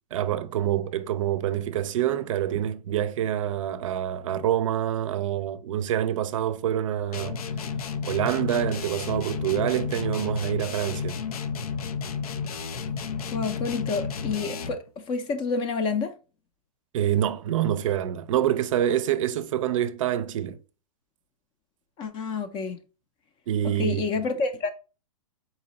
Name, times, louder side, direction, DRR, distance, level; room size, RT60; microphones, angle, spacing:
voice 1, 0.1-7.4 8.0-11.2 16.9-20.6 23.5-24.0, right 11 dB, 60° right, 0.5 m, -26 dB
sound 1, 7.1-14.9, left 5 dB, 85° left, 0.6 m, -32 dB
voice 2, 13.3-16.1 22.0-22.8 23.6-24.7, left 4 dB, 25° left, 0.5 m, -29 dB
4.1 x 2.7 x 3.9 m
hypercardioid pair, 145°, 19 cm